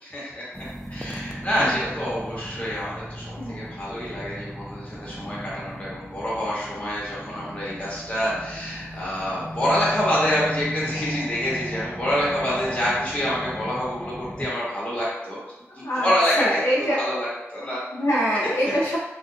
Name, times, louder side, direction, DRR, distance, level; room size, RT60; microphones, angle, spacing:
voice 1, 0.0-15.4 15.7-17.8 18.8-19.0, equal, 25° left, -7 dB, 1.1 m, -27 dB
sound 1, 0.5-14.5, equal, ahead, 0.3 m, -36 dB
voice 2, 15.8-16.1 16.4-17.0 17.9-19.0, equal, 75° left, -6 dB, 0.5 m, -24 dB
2.4 x 2.2 x 2.7 m, 1.0 s
wide cardioid pair, 85°, 5 cm